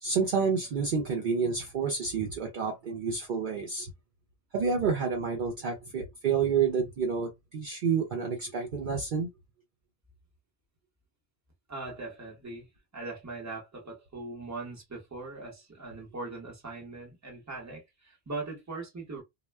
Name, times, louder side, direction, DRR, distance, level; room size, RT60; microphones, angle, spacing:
voice 1, 0.0-3.9 4.5-9.3, right 5 dB, 60° right, 0.7 m, -29 dB
voice 2, 11.7-19.2, right 3 dB, 15° right, 0.8 m, -40 dB
2.1 x 2.1 x 3.3 m
omnidirectional pair, 1.1 m